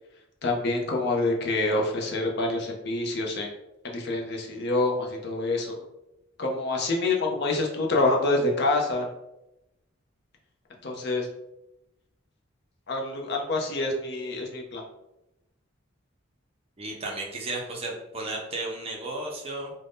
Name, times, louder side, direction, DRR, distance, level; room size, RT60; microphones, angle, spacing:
voice 1, 0.4-3.5 3.8-5.8 6.4-9.1 10.8-11.3 12.9-14.8, left 2 dB, 55° left, 0 dB, 0.5 m, -26 dB
voice 2, 16.8-19.7, right 2 dB, 30° right, -1 dB, 0.5 m, -34 dB
2.5 x 2.1 x 3.4 m, 0.90 s
head